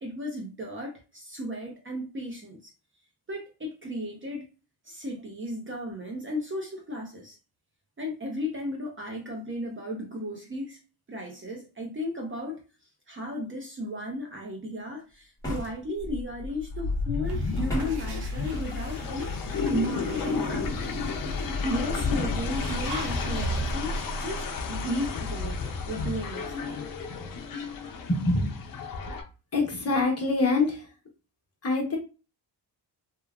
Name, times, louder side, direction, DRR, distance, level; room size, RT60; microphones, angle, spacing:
voice 1, 0.0-2.6 3.3-4.5 4.9-7.4 8.0-10.8 11.1-12.6 13.1-19.3 19.7-21.0 21.6-26.9, left 1 dB, 30° right, 0.6 m, -35 dB
sound 1, 15.4-16.1 17.7-18.2, left 1 dB, 10° left, 1.0 m, -34 dB
sound 2, 16.0-29.2, left 4 dB, 50° left, 0.6 m, -32 dB
sound 3, 17.2-23.8, right 2 dB, 65° right, 0.8 m, -38 dB
voice 2, 28.1-28.7 29.5-30.9 31.6-32.0, left 3 dB, 35° left, 1.0 m, -25 dB
3.3 x 2.2 x 2.3 m
wide cardioid pair, 135°, 43 cm